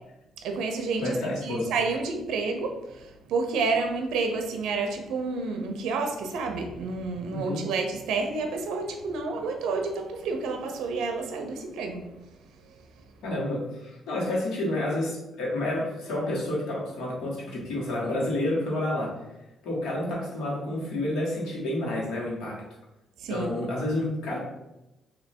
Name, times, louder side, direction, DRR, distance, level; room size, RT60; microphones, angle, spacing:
voice 1, 0.4-12.1 23.2-23.5, right 4 dB, 85° right, 5 dB, 0.5 m, -30 dB
voice 2, 1.0-1.7 7.3-7.6 13.2-19.1 19.6-22.6 23.3-24.4, left 1 dB, 80° left, -4 dB, 1.4 m, -29 dB
3.1 x 2.7 x 4.3 m, 0.97 s
cardioid pair, 90°, 0 cm